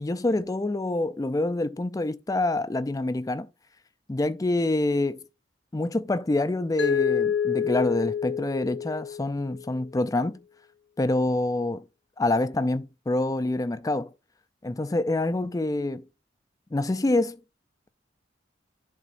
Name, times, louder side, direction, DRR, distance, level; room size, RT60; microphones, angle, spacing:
voice 1, 0.0-3.5 4.1-5.2 5.7-10.4 11.0-11.8 12.2-14.1 14.6-16.0 16.7-17.4, left 2 dB, 20° left, 0.4 m, -26 dB
Mallet percussion, 6.8-9.7, left 8 dB, 85° left, 0.5 m, -27 dB
11.0 x 3.8 x 2.5 m
head